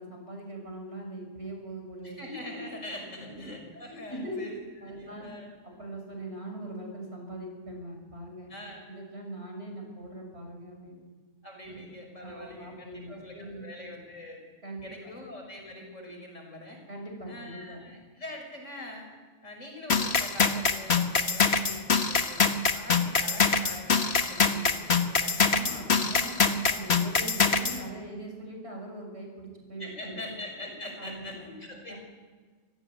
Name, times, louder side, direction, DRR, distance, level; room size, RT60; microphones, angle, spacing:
voice 1, 0.0-2.2 3.2-3.5 4.1-4.4 4.8-5.3 5.8-8.5 8.9-11.0 11.6-11.9 12.2-13.7 14.6-15.1 16.9-17.8 25.4-30.3 31.0-31.5 31.9-32.0, right 1 dB, 55° right, 2 dB, 7.0 m, -41 dB
voice 2, 2.0-4.6 4.9-5.5 8.5-8.8 11.4-14.4 14.8-16.8 17.3-19.1 19.4-22.4 22.7-25.9 29.8-32.0, left 1 dB, 85° left, 2 dB, 6.4 m, -43 dB
sound 1, 19.9-27.8, left 5 dB, 60° left, 1.7 m, -24 dB
26.0 x 16.5 x 9.4 m, 1.5 s
omnidirectional pair, 1.3 m